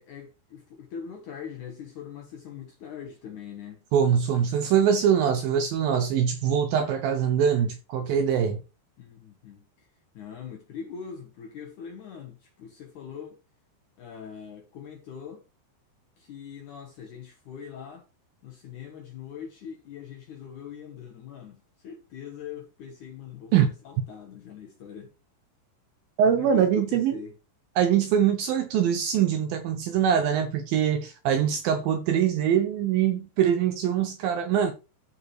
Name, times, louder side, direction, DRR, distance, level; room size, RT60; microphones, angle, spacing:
voice 1, 0.0-3.8 9.0-9.6 10.1-13.4 14.0-15.4 16.2-18.0 18.4-21.6 21.8-23.5 23.9-25.1 26.3-27.3, left 7 dB, 70° left, 2.0 m, -41 dB
voice 2, 3.9-8.6 23.5-23.7 26.2-27.2 27.8-34.7, right 8 dB, 80° right, 2.2 m, -23 dB
14.0 x 4.7 x 3.1 m
omnidirectional pair, 4.9 m